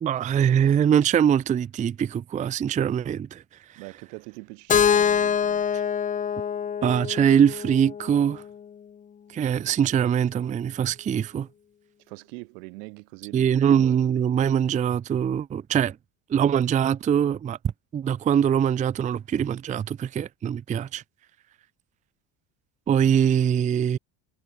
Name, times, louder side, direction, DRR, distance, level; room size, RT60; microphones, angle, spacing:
voice 1, 0.0-3.4 6.8-8.4 9.3-11.5 13.3-16.0 16.3-17.6 17.9-21.0 22.9-24.0, right 8 dB, 15° right, 0.6 m, -23 dB
voice 2, 3.7-5.6 12.1-13.5 13.8-14.0, right 32 dB, 80° right, 6.8 m, -42 dB
Keyboard (musical), 4.7-8.6, left 8 dB, 15° left, 0.8 m, -25 dB
cardioid pair, 170°, 48 cm